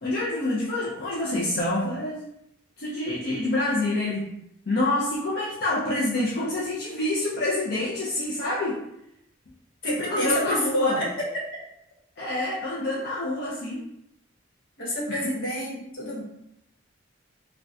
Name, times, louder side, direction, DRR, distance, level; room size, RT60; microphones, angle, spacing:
voice 1, 0.0-2.2 2.8-4.4 4.7-8.8 10.0-11.0 12.2-13.8 15.1-15.3, left 1 dB, 55° left, -6 dB, 0.5 m, -27 dB
voice 2, 9.8-11.3 14.8-16.2, left 1 dB, 80° left, -4 dB, 1.1 m, -28 dB
3.5 x 2.2 x 2.6 m, 0.79 s
head